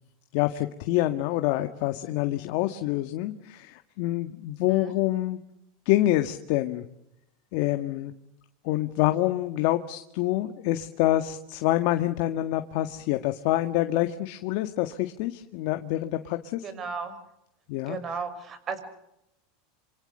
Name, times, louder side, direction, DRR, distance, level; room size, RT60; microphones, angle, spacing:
voice 1, 0.3-5.4 5.9-6.8 7.5-8.1 8.6-16.7 17.7-18.0, left 15 dB, 60° left, 8 dB, 1.8 m, -26 dB
voice 2, 16.6-17.2 17.9-18.8, right 5 dB, 30° right, 11 dB, 6.1 m, -34 dB
27.5 x 26.0 x 6.8 m, 0.83 s
supercardioid pair, 135°, 0 cm